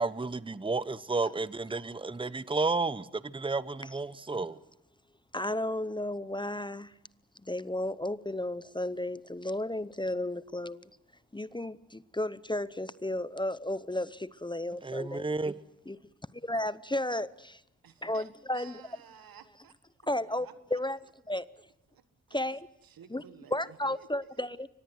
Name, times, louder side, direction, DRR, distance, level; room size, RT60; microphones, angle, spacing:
voice 1, 0.0-4.6 14.8-15.5, right 3 dB, 15° right, 0.9 m, -32 dB
voice 2, 5.3-7.0 7.4-10.9 11.3-15.3 15.9-16.0 16.3-17.6 18.0-18.8 20.0-21.0 21.3-21.5 22.3-22.7 23.1-23.2 23.5-24.7, left 1 dB, 15° left, 0.8 m, -33 dB
voice 3, 17.8-18.3 18.5-19.7 20.3-20.5 21.9-22.4 22.9-24.3, right 8 dB, 75° right, 1.6 m, -54 dB
24.0 x 19.5 x 7.9 m
supercardioid pair, 40°, 35 cm